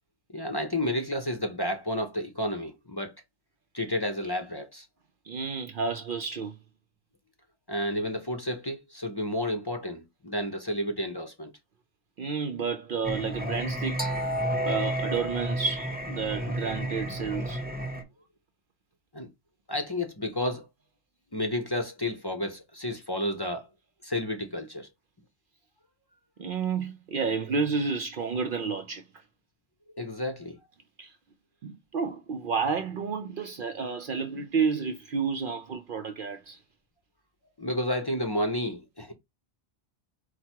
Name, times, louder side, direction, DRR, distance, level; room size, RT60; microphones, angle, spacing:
voice 1, 0.3-3.1 3.7-4.8 7.7-11.5 19.1-19.3 19.7-20.7 21.3-23.7 24.0-24.9 30.0-30.6 37.6-39.1, left 1 dB, 25° left, 0.7 m, -31 dB
voice 2, 5.3-6.6 12.2-14.2 14.6-17.6 26.4-29.0 31.0-31.1 31.6-36.6, right 5 dB, 60° right, 0.6 m, -31 dB
Singing, 13.0-18.0, right 1 dB, 10° right, 0.8 m, -31 dB
4.6 x 2.2 x 4.5 m
omnidirectional pair, 1.2 m